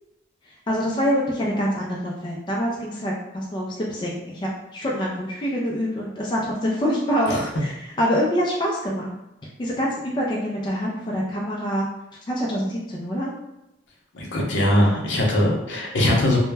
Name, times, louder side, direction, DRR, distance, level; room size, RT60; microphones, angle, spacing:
voice 1, 0.7-9.1 9.6-11.9 12.3-13.3, equal, 25° left, -3 dB, 0.3 m, -25 dB
voice 2, 14.1-16.4, left 1 dB, 75° left, -2 dB, 0.6 m, -21 dB
2.1 x 2.1 x 3.2 m, 0.89 s
head